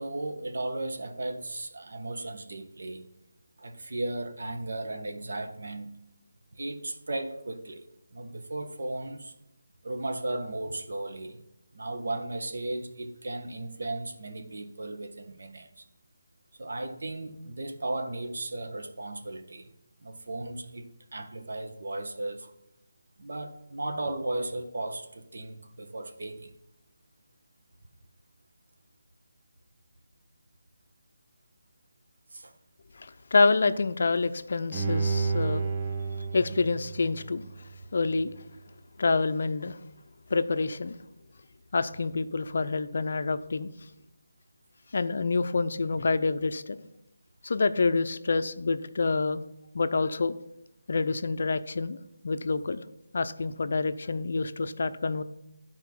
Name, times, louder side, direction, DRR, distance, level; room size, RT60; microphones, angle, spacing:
voice 1, 0.0-3.1 3.6-5.9 6.5-9.3 9.8-11.4 11.7-15.9 16.5-19.7 20.0-22.5 23.2-26.5 32.3-32.6 36.1-36.3, right 2 dB, 65° right, 1.2 m, -36 dB
voice 2, 33.0-35.7 36.2-37.5 37.9-38.3 39.0-39.8 40.3-41.0 41.7-43.7 44.9-46.8 47.4-49.4 49.7-50.3 50.9-52.0 52.2-52.8 53.1-55.2, left 3 dB, 55° left, 0.5 m, -27 dB
Bowed string instrument, 34.7-37.8 38.2-38.3, right 4 dB, 20° right, 0.5 m, -31 dB
12.0 x 4.5 x 5.9 m
figure-of-eight pair, 170°, 0 cm